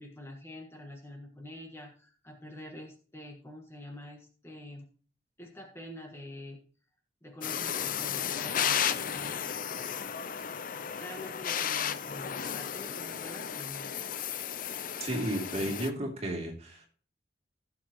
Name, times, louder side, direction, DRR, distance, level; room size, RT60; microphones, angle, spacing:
voice 1, 0.0-4.9 5.4-6.6 7.2-9.4 10.9-13.9 15.5-15.8, left 1 dB, 15° left, 2 dB, 1.5 m, -46 dB
sound 1, 7.4-15.9, left 8 dB, 50° left, 0.6 m, -34 dB
voice 2, 15.0-16.9, right 1 dB, 35° right, 0 dB, 2.9 m, -33 dB
16.0 x 7.4 x 3.0 m, 0.41 s
head